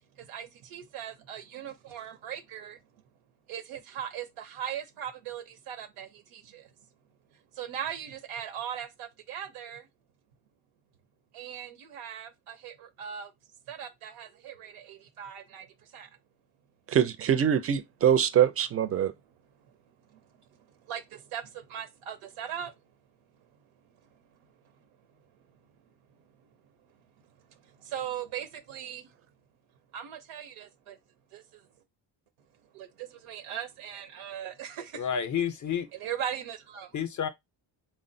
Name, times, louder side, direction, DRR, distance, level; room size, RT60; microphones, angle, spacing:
voice 1, 0.2-2.8 3.5-6.7 7.6-9.9 11.3-13.3 13.7-15.7 15.9-16.1 20.1-20.2 20.9-22.7 27.8-29.0 29.9-31.0 31.3-31.4 32.7-35.0 36.0-36.9, right 9 dB, 80° right, 0.7 m, -39 dB
voice 2, 16.9-19.1, right 9 dB, 30° right, 0.4 m, -24 dB
voice 3, 34.9-35.9 36.9-37.3, left 8 dB, 40° left, 0.5 m, -30 dB
3.6 x 2.1 x 2.6 m
supercardioid pair, 70°, 50 cm